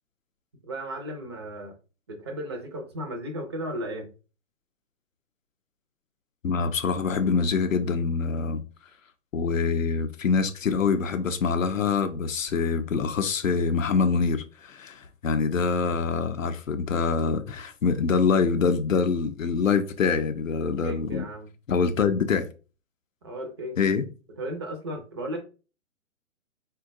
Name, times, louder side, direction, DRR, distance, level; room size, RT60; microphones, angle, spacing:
voice 1, 0.6-1.7 2.1-4.1 20.8-21.5 23.2-23.8 24.4-25.4, right 1 dB, 20° right, 0.4 m, -35 dB
voice 2, 6.4-8.6 9.3-21.2 21.7-22.4 23.8-24.1, left 5 dB, 85° left, 0.5 m, -25 dB
3.6 x 2.2 x 2.5 m
figure-of-eight pair, 120°, 39 cm